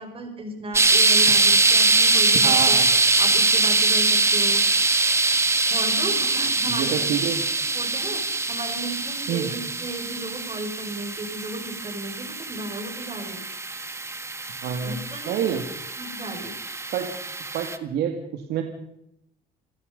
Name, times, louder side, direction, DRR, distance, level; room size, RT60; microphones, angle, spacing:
voice 1, 0.0-2.8 3.2-4.6 5.7-7.1 7.6-8.2 8.5-13.5 14.8-15.6 16.0-16.6, right 2 dB, 35° right, 5 dB, 6.1 m, -35 dB
sound 1, 0.7-17.8, right 3 dB, 15° right, 1.6 m, -23 dB
voice 2, 2.4-2.9 6.6-7.4 9.3-9.5 14.6-15.0 15.3-15.6 16.9-17.1 17.5-18.6, right 9 dB, 75° right, 5 dB, 2.4 m, -27 dB
29.0 x 16.0 x 5.5 m, 0.77 s
cardioid pair, 110°, 17 cm